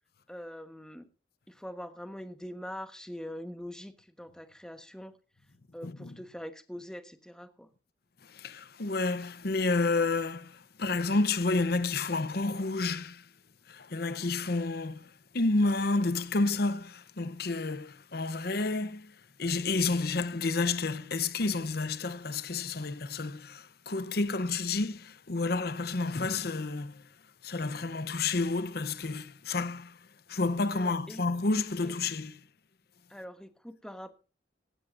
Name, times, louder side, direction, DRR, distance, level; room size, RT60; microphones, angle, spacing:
voice 1, 0.3-1.1 1.5-5.2 5.7-7.7 30.7-31.2 31.8-31.9 33.1-34.1, equal, 5° left, 1.2 m, -43 dB
voice 2, 5.8-6.2 8.2-13.3 13.7-27.1 27.4-30.0 30.3-32.4, left 3 dB, 60° left, 0.8 m, -30 dB
17.0 x 16.0 x 2.6 m
head